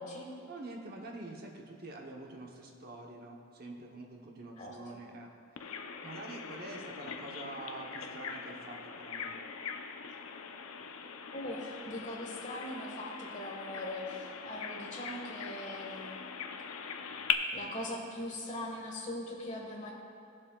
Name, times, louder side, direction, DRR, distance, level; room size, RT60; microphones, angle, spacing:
voice 1, 0.5-9.5, right 2 dB, 45° right, 0 dB, 0.9 m, -46 dB
voice 2, 4.6-5.0 11.3-16.3 17.5-19.9, left 1 dB, 35° left, -2 dB, 1.4 m, -41 dB
Bird vocalization bird call bird song, 5.6-17.3, left 7 dB, 85° left, 0.6 m, -41 dB
17.0 x 7.4 x 2.3 m, 2.4 s
head